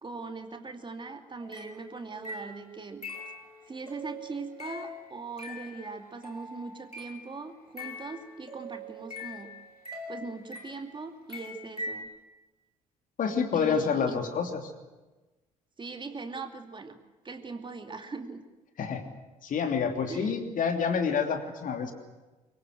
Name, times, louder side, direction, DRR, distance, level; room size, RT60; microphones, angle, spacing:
voice 1, 0.0-3.0 3.7-9.5 10.1-12.1 13.5-14.3 15.8-17.0 17.2-18.4 20.1-20.4, right 4 dB, 25° right, 6 dB, 2.6 m, -40 dB
sound 1, 1.4-7.3 7.8-11.0 11.3-12.0, left 1 dB, 90° left, 2.5 m, -42 dB
voice 2, 13.2-14.6 18.8-19.0 19.4-21.9, left 6 dB, 45° left, 5 dB, 3.1 m, -28 dB
25.0 x 22.5 x 7.9 m, 1.2 s
figure-of-eight pair, 50°, 19 cm